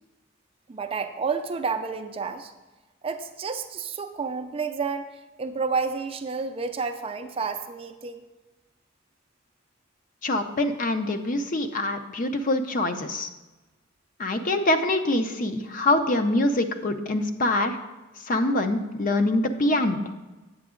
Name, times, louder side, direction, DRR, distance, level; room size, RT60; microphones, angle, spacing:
voice 1, 0.7-2.5 3.0-8.2, right 5 dB, 25° right, 7 dB, 0.4 m, -30 dB
voice 2, 10.2-13.3 14.2-17.8 18.3-20.0, left 1 dB, 40° left, 7 dB, 0.5 m, -24 dB
8.2 x 7.7 x 3.7 m, 1.1 s
head